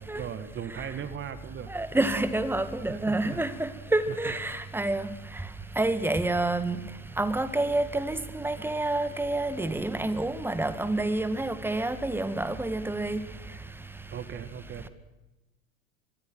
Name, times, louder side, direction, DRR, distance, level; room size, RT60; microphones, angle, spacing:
voice 1, 0.0-1.7 2.9-3.4 4.1-4.3 14.1-14.9, right 8 dB, 30° right, 1.9 m, -38 dB
voice 2, 1.7-5.1 5.8-6.8 7.2-13.2, right 2 dB, 5° right, 1.8 m, -28 dB
25.0 x 21.5 x 6.2 m
figure-of-eight pair, 90°, 40 cm